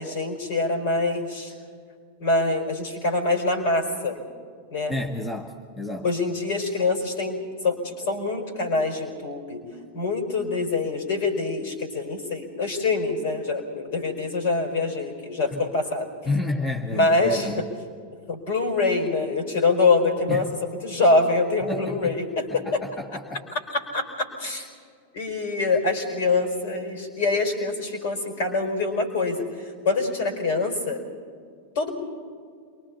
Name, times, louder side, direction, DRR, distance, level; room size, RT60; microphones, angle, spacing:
voice 1, 0.0-1.5 2.2-4.2 4.7-4.9 6.0-9.6 9.9-16.1 16.9-17.5 18.3-22.8 23.7-24.1 24.4-24.7 25.1-31.0 31.7-31.9, left 3 dB, 55° left, 5 dB, 4.8 m, -25 dB
voice 2, 4.9-6.1 15.5-15.7 16.2-17.6 20.3-20.5 21.7-22.2 22.5-23.4, left 2 dB, 10° left, 3 dB, 1.5 m, -30 dB
28.5 x 24.0 x 4.2 m, 2.2 s
figure-of-eight pair, 90°, 0 cm